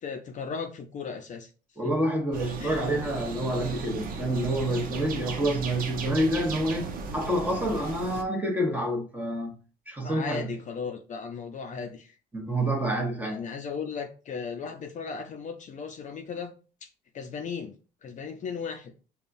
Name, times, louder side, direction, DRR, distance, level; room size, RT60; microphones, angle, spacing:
voice 1, 0.0-1.5 1.8-1.9 2.6-2.9 10.0-12.2 13.2-16.5 16.8-17.7 18.0-18.9, left 5 dB, 45° left, 0.6 m, -36 dB
voice 2, 1.8-9.5 9.9-10.5 12.3-13.4, right 1 dB, 10° right, 1.1 m, -28 dB
sound 1, 2.3-8.2, right 4 dB, 60° right, 0.8 m, -36 dB
5.3 x 2.3 x 2.6 m
cardioid pair, 110°, 17 cm